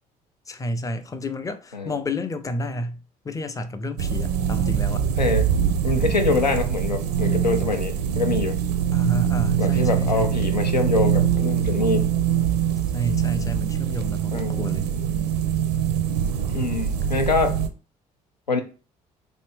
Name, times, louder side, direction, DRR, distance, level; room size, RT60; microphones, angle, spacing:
voice 1, 0.5-5.1 8.9-10.3 12.9-14.9, left 1 dB, 15° left, 0.5 m, -31 dB
sound 1, 4.0-17.7, right 8 dB, 70° right, 0.5 m, -23 dB
voice 2, 5.2-5.5 5.8-8.6 9.6-12.1 14.3-14.7 16.5-17.6 18.5-18.6, left 3 dB, 85° left, 0.5 m, -24 dB
4.0 x 2.7 x 3.4 m
figure-of-eight pair, 50°, 21 cm